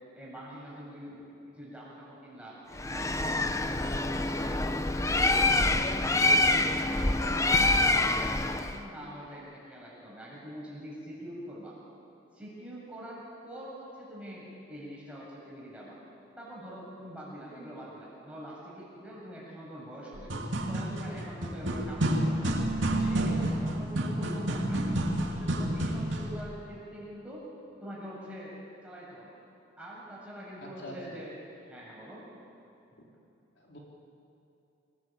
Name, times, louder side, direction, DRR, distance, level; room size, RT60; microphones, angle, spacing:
voice 1, 0.1-2.6 2.9-4.6 5.0-11.8 12.3-16.0 16.4-20.3 20.7-22.6 22.9-27.5 27.8-28.6 28.8-29.4 29.8-31.4 31.7-32.3, equal, 5° right, -6 dB, 7.4 m, -44 dB
Bird, 2.8-8.8, left 2 dB, 15° left, 0.8 m, -26 dB
voice 2, 17.5-17.8 30.6-31.2 33.0-33.1 33.6-33.8, equal, 60° left, -2 dB, 3.6 m, -45 dB
sound 1, 20.1-26.4, right 1 dB, 70° right, 2.7 m, -29 dB
27.0 x 19.0 x 8.8 m, 2.8 s
head